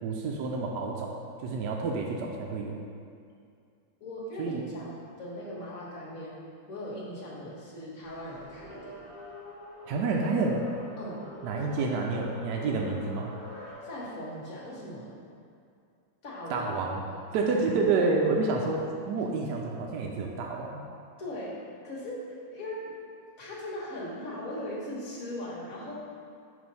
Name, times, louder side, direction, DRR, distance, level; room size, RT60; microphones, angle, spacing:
voice 1, 0.0-2.7 4.4-4.6 9.9-10.6 11.4-13.3 16.5-17.0 17.3-20.8, right 3 dB, 75° right, 0 dB, 1.1 m, -29 dB
voice 2, 4.0-6.4 6.7-9.0 11.0-11.3 11.7-12.0 13.8-15.1 16.2-16.8 17.0-17.2 21.2-21.6 21.8-22.9 23.4-26.1, left 1 dB, 50° left, -6 dB, 1.5 m, -39 dB
sound 1, 8.0-13.7, equal, 10° right, 1.0 m, -46 dB
5.0 x 3.4 x 5.4 m, 2.4 s
omnidirectional pair, 2.0 m